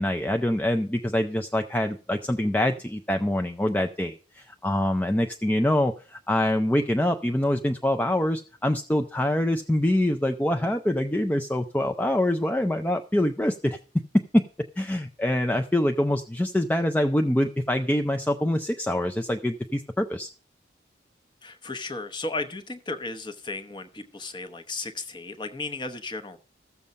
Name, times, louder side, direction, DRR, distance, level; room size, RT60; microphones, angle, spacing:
voice 1, 0.0-13.8 14.1-14.4 14.8-20.3, left 1 dB, 10° left, 5 dB, 0.4 m, -25 dB
voice 2, 21.4-26.4, left 3 dB, 25° left, 8 dB, 0.8 m, -35 dB
14.0 x 7.0 x 5.2 m, 0.39 s
head